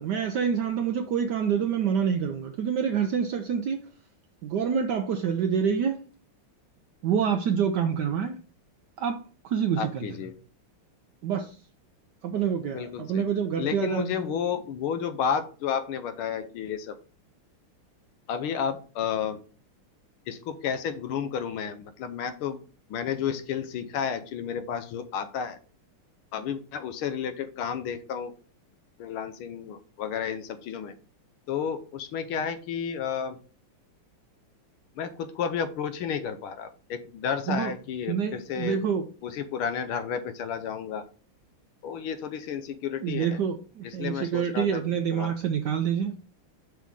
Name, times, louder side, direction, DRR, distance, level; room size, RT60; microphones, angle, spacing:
voice 1, 0.0-3.8 4.4-6.0 7.0-8.4 9.0-10.1 11.2-11.6 12.2-14.2 37.5-37.7 38.1-39.1 43.0-46.1, right 7 dB, 75° right, 1.0 m, -27 dB
voice 2, 9.8-10.3 12.7-13.3 13.6-17.0 18.3-19.4 20.3-22.6 22.9-25.6 26.3-28.3 29.0-30.9 31.5-33.4 35.0-38.8 39.2-41.0 41.8-43.4 43.8-44.8 45.1-45.3, left 7 dB, 80° left, 1.6 m, -31 dB
6.2 x 5.7 x 3.6 m
omnidirectional pair, 2.4 m